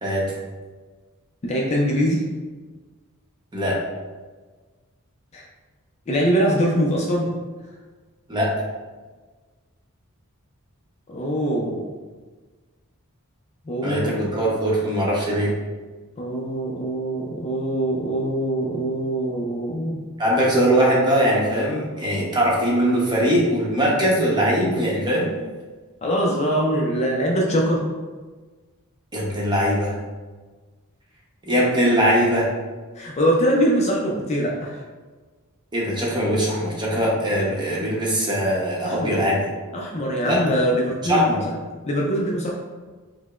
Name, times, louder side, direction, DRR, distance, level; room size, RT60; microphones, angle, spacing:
voice 1, 1.4-2.2 5.3-5.4 6.1-7.3 11.1-11.9 13.7-14.1 16.2-20.0 26.0-27.8 32.9-34.8 38.8-39.2 39.7-41.5 41.8-42.5, equal, 30° left, -1 dB, 0.4 m, -23 dB
voice 2, 13.8-15.5 20.2-25.3 29.1-29.9 31.5-32.5 35.7-39.5 40.2-40.4 41.1-41.4, equal, 20° right, -5 dB, 0.7 m, -21 dB
4.8 x 2.0 x 2.3 m, 1.3 s
head